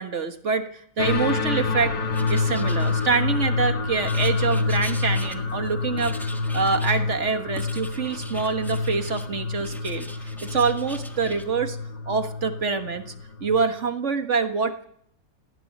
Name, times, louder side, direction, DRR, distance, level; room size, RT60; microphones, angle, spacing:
voice 1, 0.0-1.9 2.3-6.2 6.5-10.1 10.4-11.8 12.1-13.1 13.4-14.9, right 5 dB, 45° right, 8 dB, 1.8 m, -25 dB
sound 1, 1.0-13.6, left 3 dB, 85° left, 2.6 m, -27 dB
Writing, 2.1-3.5 4.0-5.7 6.0-7.0 7.6-9.3 9.6-11.5, equal, ahead, 1.5 m, -42 dB
18.0 x 16.5 x 9.9 m, 0.70 s
omnidirectional pair, 1.7 m